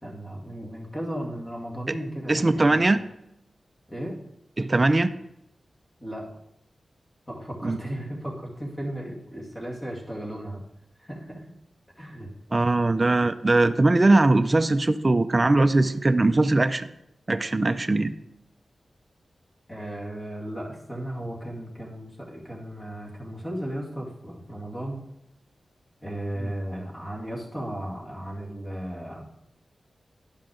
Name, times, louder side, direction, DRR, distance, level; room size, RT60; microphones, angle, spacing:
voice 1, 0.0-2.9 3.9-4.2 6.0-6.2 7.3-10.6 11.0-11.5 12.0-12.3 19.7-25.0 26.0-29.2, right 1 dB, 20° left, -2 dB, 2.2 m, -35 dB
voice 2, 2.3-3.0 4.6-5.1 7.6-7.8 12.5-16.9 17.3-18.1 26.4-26.5, right 2 dB, 30° right, 9 dB, 0.4 m, -20 dB
10.5 x 5.7 x 5.0 m, 0.83 s
wide cardioid pair, 90°, 0 cm